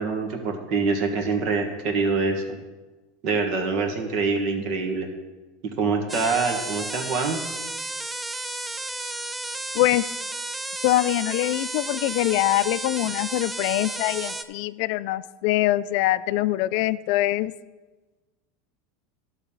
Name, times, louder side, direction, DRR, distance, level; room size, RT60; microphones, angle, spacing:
voice 1, 0.0-2.6 3.2-5.1 5.8-7.4, right 4 dB, 50° right, 4 dB, 1.6 m, -25 dB
sound 1, 6.1-14.4, right 2 dB, 10° right, 0.4 m, -33 dB
voice 2, 10.8-17.5, left 16 dB, 60° left, 16 dB, 0.3 m, -23 dB
12.0 x 4.1 x 7.1 m, 1.2 s
supercardioid pair, 130°, 0 cm